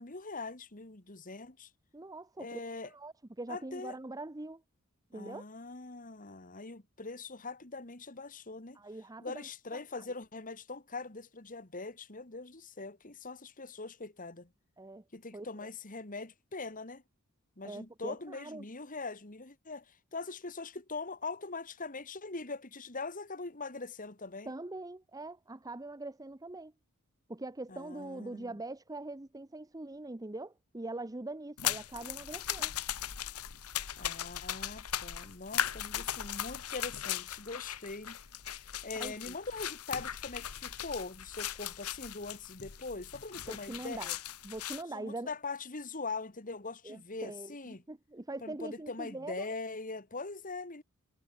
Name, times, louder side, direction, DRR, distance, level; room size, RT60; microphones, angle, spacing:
voice 1, 0.0-1.7 2.4-2.9 3.5-4.0 5.1-8.8 9.2-14.5 15.1-17.0 17.6-24.5 27.7-28.6 34.0-38.2 38.5-44.2 44.9-47.8 48.4-50.8, left 3 dB, 35° left, 2.1 m, -42 dB
voice 2, 1.9-4.6 5.1-5.4 8.7-10.1 14.8-15.0 15.3-15.7 17.6-18.7 24.5-26.7 27.3-32.7 39.0-39.3 43.5-44.1 44.4-45.3 46.8-49.5, right 2 dB, 15° right, 0.7 m, -43 dB
sound 1, 31.6-44.8, left 10 dB, 80° left, 1.4 m, -38 dB
head